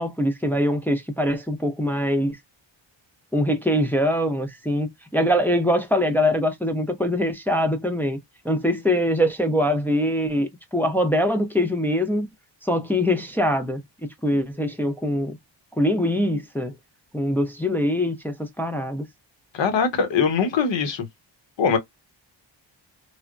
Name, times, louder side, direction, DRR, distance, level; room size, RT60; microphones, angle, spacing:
voice 1, 0.0-2.4 3.3-8.2 8.4-12.3 12.6-13.8 14.2-15.4 15.8-16.7 17.1-19.0, equal, 5° left, 0.3 m, -23 dB
voice 2, 19.5-21.1 21.6-21.8, left 6 dB, 70° left, 0.9 m, -21 dB
3.2 x 2.0 x 2.3 m
wide cardioid pair, 180°, 46 cm